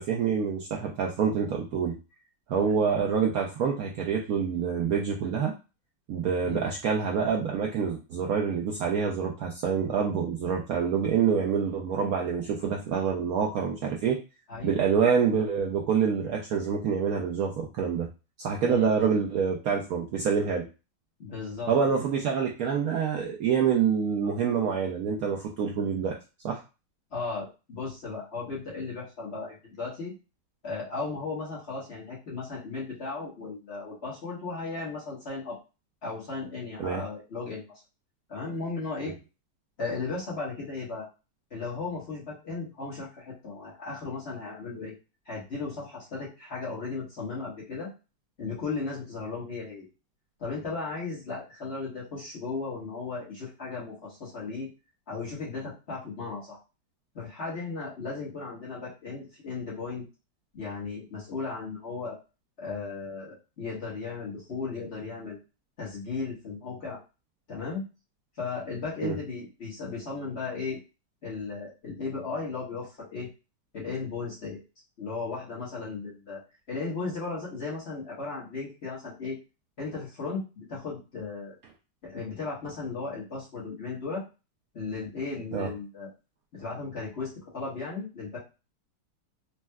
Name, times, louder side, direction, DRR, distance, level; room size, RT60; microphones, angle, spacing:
voice 1, 0.0-1.9 2.5-5.5 6.1-14.2 14.6-18.1 18.4-20.7 21.7-26.2 26.4-26.6 36.8-37.0 39.0-39.1 69.0-69.2 85.5-85.7, right 6 dB, 70° right, -1 dB, 0.8 m, -26 dB
voice 2, 14.5-14.9 18.6-19.1 21.2-21.7 27.1-30.1 30.6-35.6 36.0-37.6 38.3-39.1 39.8-41.1 41.5-44.9 45.3-47.9 48.4-49.8 50.4-54.7 55.1-56.6 57.1-60.0 60.5-62.2 62.6-65.4 65.8-67.0 67.5-67.8 68.4-70.8 71.2-73.3 73.7-74.6 75.0-76.4 76.7-79.4 79.8-81.5 82.0-84.2 84.7-86.1 86.5-88.4, left 4 dB, 40° left, -6 dB, 1.2 m, -36 dB
4.3 x 2.1 x 2.2 m, 0.29 s
omnidirectional pair, 1.9 m